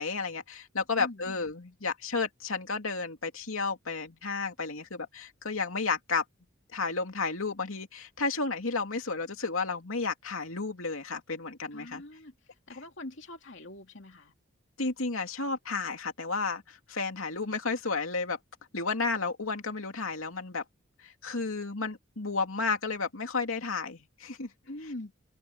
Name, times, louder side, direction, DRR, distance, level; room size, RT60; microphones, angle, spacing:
voice 1, 0.0-6.2 6.7-12.0 14.8-18.4 18.7-20.6 21.0-24.5, left 4 dB, 85° left, 2.6 m, -32 dB
voice 2, 11.7-12.3 12.7-14.3 24.6-25.1, left 1 dB, 60° left, 2.9 m, -43 dB
head